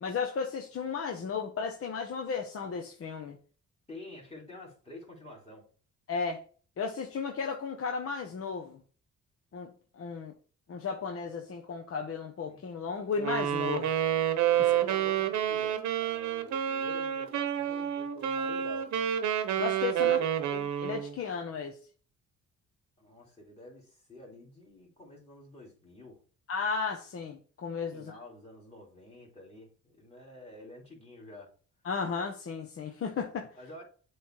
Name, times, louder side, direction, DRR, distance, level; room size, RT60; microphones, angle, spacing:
voice 1, 0.0-3.4 6.1-6.4 6.8-8.8 9.5-10.3 10.7-14.0 19.6-20.2 20.5-21.8 26.5-28.2 31.8-33.5, left 5 dB, 50° left, 2 dB, 0.9 m, -34 dB
voice 2, 3.9-5.6 12.5-12.6 14.5-19.2 20.0-20.2 23.0-26.2 27.9-31.5 33.6-33.8, left 1 dB, 20° left, -2 dB, 2.9 m, -48 dB
Wind instrument woodwind instrument, 13.2-21.2, right 10 dB, 70° right, 0.9 m, -29 dB
7.8 x 3.3 x 4.4 m, 0.41 s
cardioid pair, 90°, 30 cm